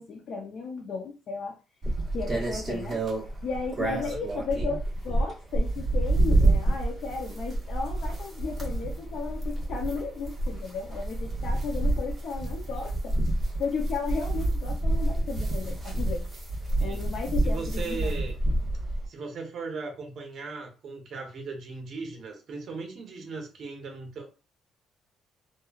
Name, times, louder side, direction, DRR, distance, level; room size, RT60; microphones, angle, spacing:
voice 1, 0.0-1.5 2.1-3.0 3.4-4.8 5.0-13.1 13.6-16.2 16.8-18.1, left 4 dB, 50° left, 2 dB, 0.5 m, -34 dB
sound 1, 1.8-19.1, right 2 dB, 10° right, 1.0 m, -28 dB
voice 2, 3.8-4.2 16.8-17.1 17.4-18.4 19.1-24.3, right 4 dB, 40° right, 2 dB, 0.8 m, -38 dB
3.0 x 2.2 x 2.3 m, 0.32 s
cardioid pair, 170°, 0 cm